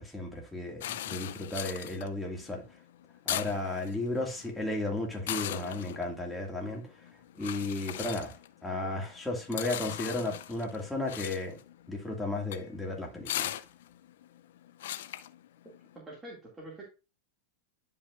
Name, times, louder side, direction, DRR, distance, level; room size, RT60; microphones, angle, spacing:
voice 1, 0.0-2.6 3.3-6.9 7.4-8.4 8.6-11.6 11.9-13.6, left 2 dB, 5° left, 2.0 m, -34 dB
sound 1, 0.8-16.0, left 12 dB, 75° left, 0.4 m, -40 dB
voice 2, 15.9-16.8, right 1 dB, 15° right, 2.1 m, -45 dB
10.0 x 5.4 x 2.4 m
supercardioid pair, 130°, 0 cm